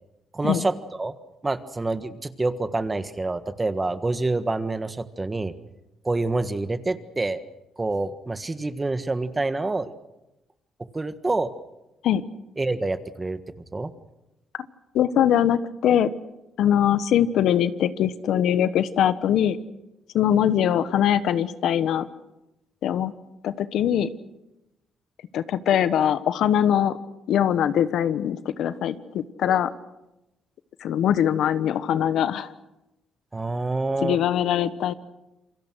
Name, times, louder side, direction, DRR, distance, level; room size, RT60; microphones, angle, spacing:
voice 1, 0.3-1.1 1.4-5.5 6.0-7.4 7.8-9.9 10.9-11.5 12.6-13.4 13.7-13.9 33.3-34.2, right 2 dB, 20° right, 11 dB, 1.5 m, -27 dB
voice 2, 14.9-16.1 16.6-19.6 20.1-22.1 22.8-23.1 23.4-24.1 25.3-27.0 27.3-29.7 30.8-32.5 34.0-34.9, left 10 dB, 75° left, 13 dB, 1.1 m, -22 dB
28.0 x 23.0 x 6.3 m, 0.95 s
cardioid pair, 90°, 0 cm